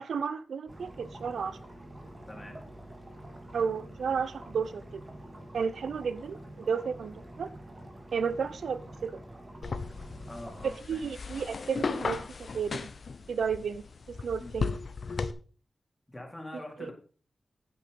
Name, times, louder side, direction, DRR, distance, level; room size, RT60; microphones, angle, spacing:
voice 1, 0.0-1.6 3.5-5.0 5.5-7.5 8.1-9.2 10.6-12.9 13.3-14.7 16.5-16.9, right 6 dB, 90° right, 0.7 m, -33 dB
sound 1, 0.7-10.7, right 1 dB, 30° right, 2.7 m, -47 dB
voice 2, 2.3-2.7 10.3-11.0 14.4-14.5 16.1-16.9, left 1 dB, 20° left, 4.0 m, -43 dB
sound 2, 9.6-15.3, left 4 dB, 65° left, 1.0 m, -36 dB
9.5 x 8.5 x 5.3 m
cardioid pair, 65°, 0 cm